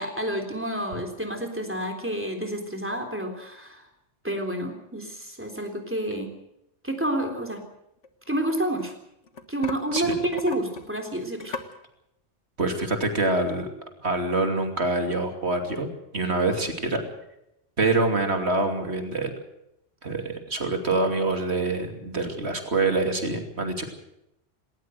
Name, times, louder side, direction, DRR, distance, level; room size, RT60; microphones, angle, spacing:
voice 1, 0.0-3.9 4.2-6.3 6.8-7.6 8.3-8.9 9.5-11.6, right 1 dB, 10° right, 4 dB, 3.6 m, -29 dB
sound 1, 8.0-8.9 9.3-11.8, left 5 dB, 90° left, 1.8 m, -37 dB
voice 2, 12.6-13.7 14.0-15.9 16.1-17.0 17.8-19.3 20.0-23.9, right 2 dB, 65° right, 5 dB, 3.1 m, -25 dB
19.5 x 18.5 x 8.0 m, 0.82 s
omnidirectional pair, 1.2 m